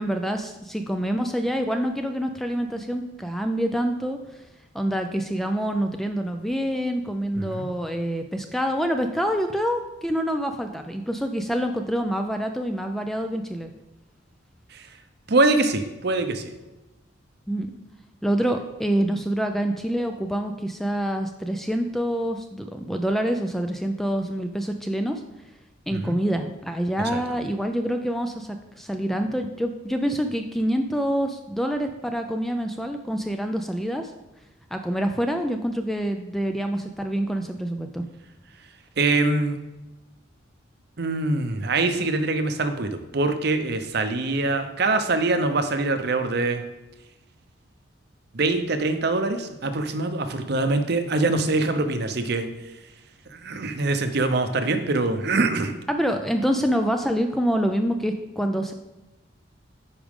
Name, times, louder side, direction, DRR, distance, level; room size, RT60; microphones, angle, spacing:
voice 1, 0.0-4.4 4.7-13.7 17.5-17.7 18.2-25.2 25.9-34.1 34.7-38.0 55.9-58.7, equal, ahead, 5 dB, 0.3 m, -26 dB
voice 2, 15.3-16.5 25.9-26.2 27.1-27.2 39.0-39.6 41.0-46.6 48.3-52.5 53.3-55.7, right 3 dB, 55° right, 8 dB, 0.7 m, -24 dB
9.6 x 5.0 x 3.6 m, 1.0 s
head